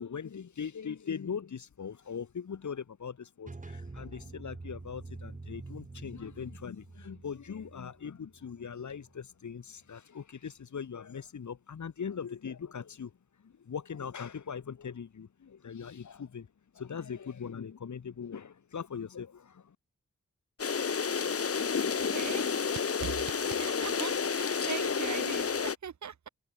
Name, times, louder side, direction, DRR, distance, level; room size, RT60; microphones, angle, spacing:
voice 1, 0.0-13.1 13.4-16.5 16.7-19.7, left 7 dB, 75° left, 2.8 m, -40 dB
sound 1, 3.4-9.1, right 3 dB, 25° right, 2.1 m, -46 dB
sound 2, 20.6-25.8, left 6 dB, 50° left, 1.4 m, -30 dB
voice 2, 22.1-22.5 22.7-23.1 23.4-26.3, right 8 dB, 70° right, 1.2 m, -40 dB
wide cardioid pair, 105°, 30 cm